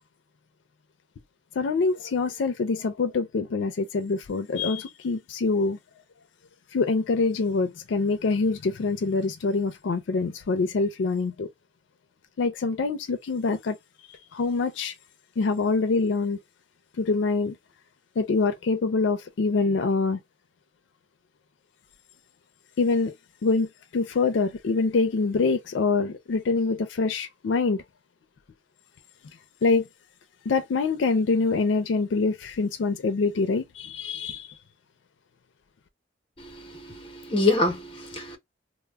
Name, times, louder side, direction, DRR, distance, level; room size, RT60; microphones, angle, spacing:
voice 1, 1.6-5.8 6.7-11.5 12.4-13.8 14.1-14.9 15.4-16.4 17.0-17.5 18.2-20.2 22.8-23.1 23.4-27.8 29.6-29.9 30.5-34.5, left 4 dB, 80° left, 0.4 m, -25 dB
voice 2, 36.7-38.4, left 2 dB, 30° left, 0.7 m, -25 dB
2.1 x 2.0 x 3.3 m
head